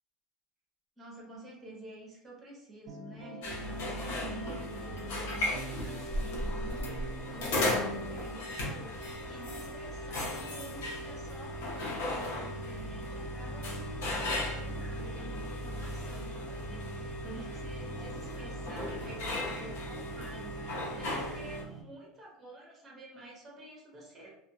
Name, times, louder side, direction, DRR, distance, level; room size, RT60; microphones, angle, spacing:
voice 1, 1.0-24.3, right 2 dB, 20° right, -2 dB, 0.9 m, -49 dB
sound 1, 2.9-8.2, right 2 dB, 70° right, 0.5 m, -44 dB
sound 2, 3.4-21.6, left 1 dB, 80° left, 0.8 m, -36 dB
sound 3, 8.8-21.8, right 3 dB, ahead, 0.5 m, -45 dB
2.4 x 2.3 x 2.7 m, 0.83 s
supercardioid pair, 150°, 0 cm